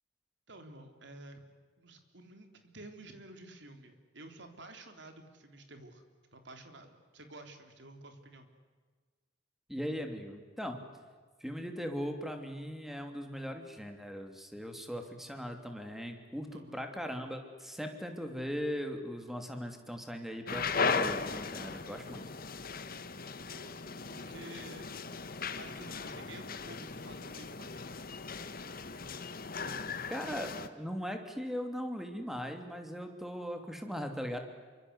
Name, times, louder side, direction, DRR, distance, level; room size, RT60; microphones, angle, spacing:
voice 1, 0.5-1.4 1.8-6.0 6.3-8.5 16.5-16.8 23.5-23.7 24.1-24.9 25.3-27.9, right 2 dB, 65° right, 6 dB, 3.6 m, -51 dB
voice 2, 9.7-10.8 11.4-22.2 30.1-34.4, equal, ahead, 5 dB, 3.0 m, -39 dB
sound 1, 20.5-30.7, left 4 dB, 50° left, 1.4 m, -37 dB
28.0 x 25.0 x 8.2 m, 1.5 s
head